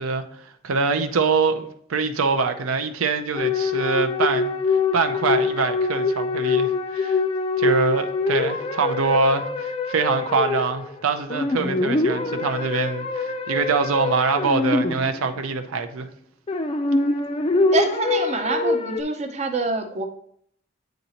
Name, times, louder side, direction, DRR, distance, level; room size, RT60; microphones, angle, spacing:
voice 1, 0.0-7.2 7.6-16.1, right 4 dB, 85° right, 0.5 m, -24 dB
sound 1, 3.4-11.0 11.3-15.4 16.5-19.0, left 3 dB, 25° left, 0.4 m, -24 dB
voice 2, 17.7-20.1, right 3 dB, 30° right, 0.5 m, -25 dB
9.1 x 3.9 x 2.8 m
head